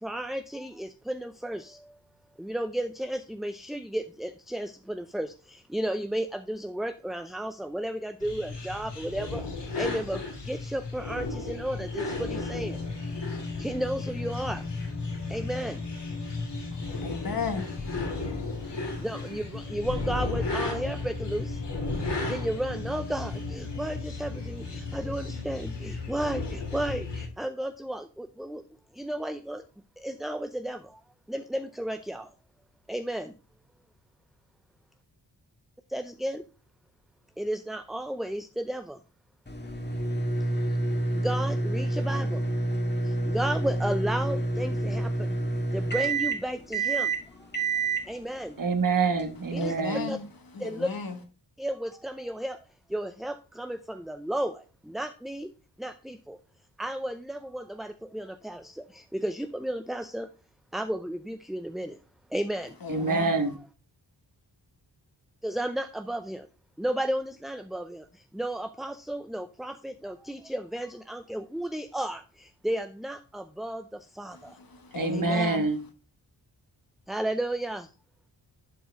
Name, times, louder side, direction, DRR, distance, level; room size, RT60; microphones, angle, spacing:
voice 1, 0.0-1.8 2.4-9.4 9.8-12.8 13.6-14.6 15.3-15.8 19.0-21.6 22.3-28.6 29.0-29.6 30.0-30.8 31.3-32.3 32.9-33.3 35.9-36.4 37.4-39.0 41.1-42.4 43.2-45.4 45.7-47.1 48.1-48.6 49.5-49.7 50.1-50.2 50.6-50.9 51.6-52.6 52.9-55.5 55.8-56.4 56.8-60.3 60.7-62.0 62.3-62.7 65.4-66.5 66.8-68.0 68.3-74.5 75.1-75.5 77.1-77.9, right 1 dB, ahead, 0.5 m, -33 dB
sound 1, 8.2-27.3, left 3 dB, 70° left, 3.0 m, -34 dB
voice 2, 16.7-19.1 49.6-50.2 50.5-51.2 62.8-63.4 74.3-75.7, left 5 dB, 55° left, 1.7 m, -36 dB
sound 2, 39.5-49.8, right 2 dB, 25° left, 1.8 m, -29 dB
voice 3, 48.6-50.1 62.9-63.5 74.9-75.8, right 4 dB, 45° right, 1.4 m, -26 dB
11.0 x 4.7 x 3.5 m
cardioid pair, 65°, 43 cm